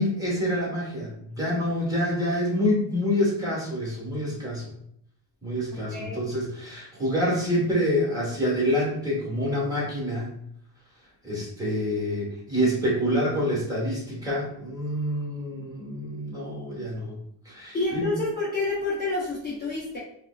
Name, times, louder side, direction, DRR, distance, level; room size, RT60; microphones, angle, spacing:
voice 1, 0.0-4.7 5.4-10.3 11.2-17.2 17.4-18.1, equal, 10° right, -5 dB, 1.1 m, -27 dB
voice 2, 17.7-20.0, left 3 dB, 20° left, -7 dB, 0.6 m, -28 dB
4.9 x 2.1 x 2.3 m, 0.72 s
cardioid pair, 140°, 47 cm